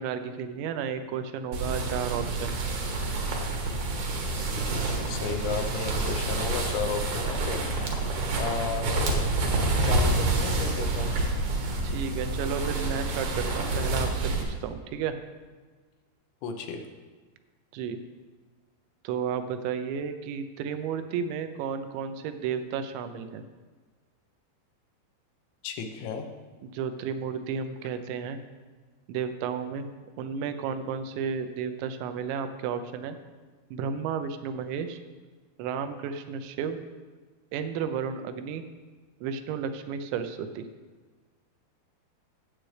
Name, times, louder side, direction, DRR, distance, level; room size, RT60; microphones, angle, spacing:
voice 1, 0.0-2.6 11.8-15.1 17.7-18.0 19.0-23.4 26.6-28.4 29.1-29.9 30.2-33.2 33.7-35.0 35.6-36.8 37.5-38.6 39.2-40.6, right 7 dB, 85° right, 9 dB, 3.0 m, -32 dB
sound 1, 1.5-14.4, right 2 dB, 65° right, 2.0 m, -28 dB
voice 2, 4.5-8.0 8.4-9.2 9.8-11.3 16.4-16.8 25.6-26.3, left 5 dB, 85° left, 5 dB, 3.3 m, -34 dB
16.0 x 7.7 x 3.3 m, 1.4 s
omnidirectional pair, 5.1 m